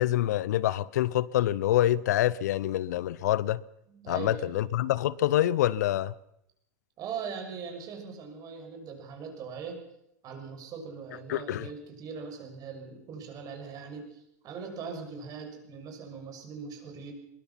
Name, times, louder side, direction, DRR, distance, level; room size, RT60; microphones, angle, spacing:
voice 1, 0.0-3.6 4.1-6.1 11.3-11.7, left 13 dB, 75° left, 0.7 m, -26 dB
voice 2, 3.9-4.5 7.0-9.8 10.2-17.1, right 6 dB, 40° right, 6.6 m, -40 dB
22.0 x 21.0 x 5.8 m
hypercardioid pair, 95°, 9 cm